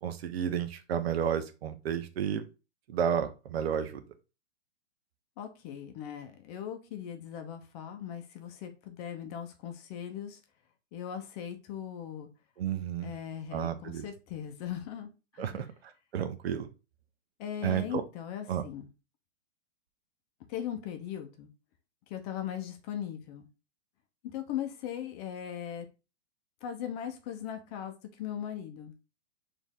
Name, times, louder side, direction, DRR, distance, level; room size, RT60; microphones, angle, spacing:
voice 1, 0.0-2.4 2.9-4.0 12.6-13.1 13.5-14.0 15.4-16.7 17.6-18.0 18.5-18.6, right 9 dB, 55° right, 9 dB, 0.7 m, -32 dB
voice 2, 5.4-10.4 10.9-12.3 13.0-15.7 17.4-18.9 20.5-21.5 22.1-23.5 24.2-25.9 26.6-29.0, left 9 dB, 35° left, 6 dB, 0.7 m, -39 dB
4.3 x 2.7 x 3.5 m, 0.30 s
hypercardioid pair, 120°, 36 cm